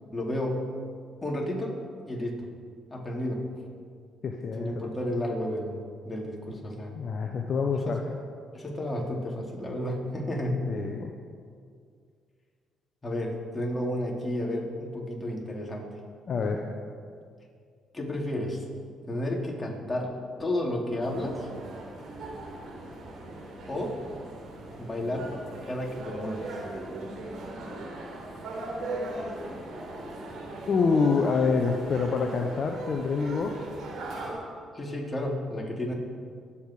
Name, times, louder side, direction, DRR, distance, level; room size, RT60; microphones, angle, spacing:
voice 1, 0.1-0.7 1.2-1.7 2.1-2.5 2.9-3.5 4.6-6.9 8.5-10.7 13.0-15.9 16.4-16.5 17.9-18.6 19.1-21.5 23.7-24.0 24.8-25.4 25.7-26.6 34.7-35.9, left 1 dB, 20° left, -1 dB, 4.1 m, -32 dB
voice 2, 4.2-4.7 6.9-8.2 10.7-11.1 16.3-16.6 30.7-33.6, left 4 dB, 55° left, 3 dB, 1.2 m, -26 dB
sound 1, 21.0-34.3, right 2 dB, 65° right, 4.7 m, -39 dB
23.5 x 8.8 x 5.1 m, 2.1 s
supercardioid pair, 55°, 0 cm